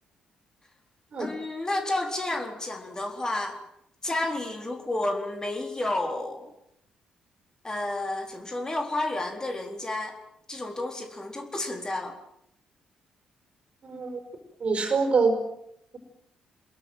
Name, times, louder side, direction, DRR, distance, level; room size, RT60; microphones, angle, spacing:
voice 1, 1.2-3.6 4.0-6.5 7.6-10.2 10.5-12.2, left 2 dB, 20° left, 4 dB, 4.2 m, -31 dB
voice 2, 13.8-14.2 14.6-15.4, right 4 dB, 40° right, 7 dB, 5.0 m, -24 dB
27.0 x 21.5 x 7.7 m, 0.76 s
figure-of-eight pair, 40°, 3 cm